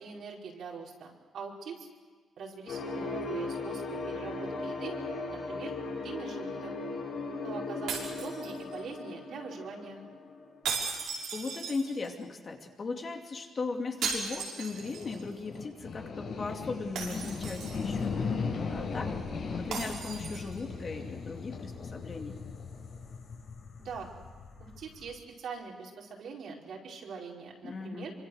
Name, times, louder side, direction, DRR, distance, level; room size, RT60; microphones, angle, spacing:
voice 1, 0.0-1.9 2.4-4.9 5.3-5.7 6.0-6.7 7.4-10.1 23.8-24.1 24.6-28.1, right 5 dB, 65° right, -1 dB, 4.9 m, -42 dB
sound 1, 2.7-11.0, left 3 dB, 80° left, 7.2 m, -38 dB
sound 2, 7.9-9.0 10.6-12.2 14.0-15.2 15.5-15.6 17.0-18.0 19.7-20.6, right 5 dB, 90° right, 5.7 m, -37 dB
voice 2, 11.3-18.2 18.7-19.2 19.5-22.4 27.6-28.1, left 4 dB, 35° left, 2 dB, 2.7 m, -37 dB
sound 3, 14.7-25.1, left 5 dB, 55° left, 5.7 m, -38 dB
26.5 x 25.0 x 6.6 m, 1.4 s
cardioid pair, 130°, 0 cm